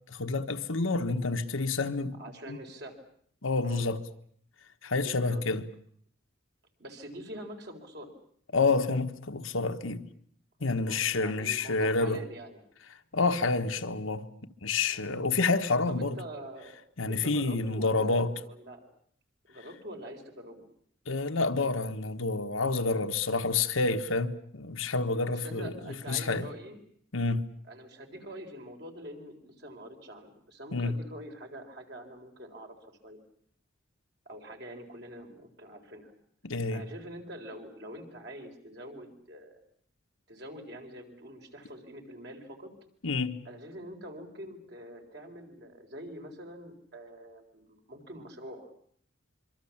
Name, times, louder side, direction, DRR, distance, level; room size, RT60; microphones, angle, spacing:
voice 1, 0.1-2.1 2.5-2.6 3.4-4.0 4.8-5.6 8.5-10.1 10.6-12.2 13.1-14.3 14.6-16.2 17.0-18.3 21.1-26.5 27.1-27.4 30.7-31.0 36.4-36.8 43.0-43.4, left 3 dB, 80° left, 1.4 m, -28 dB
voice 2, 2.2-3.0 3.6-3.8 5.0-5.5 6.8-8.1 10.8-12.6 13.5-13.6 14.9-15.1 15.9-16.8 17.1-18.9 19.5-20.7 25.3-26.8 27.7-32.8 33.0-33.2 34.3-36.1 36.7-39.6 40.3-42.7 43.5-48.7, equal, 55° right, 4.2 m, -45 dB
25.5 x 24.0 x 7.3 m
head